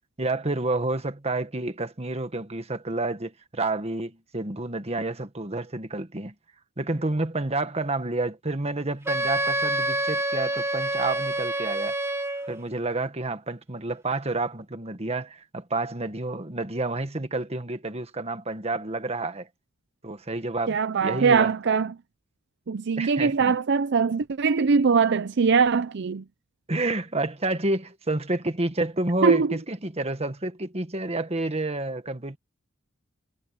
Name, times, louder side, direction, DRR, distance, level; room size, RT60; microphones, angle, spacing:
voice 1, 0.2-6.3 6.8-11.9 12.5-19.5 20.0-21.5 23.0-23.5 26.7-32.4, right 2 dB, 30° right, 1.7 m, -29 dB
Wind instrument woodwind instrument, 9.1-12.6, right 1 dB, 15° right, 1.2 m, -27 dB
voice 2, 20.7-21.9 22.7-26.2 29.2-29.6, right 5 dB, 60° right, 0.5 m, -22 dB
head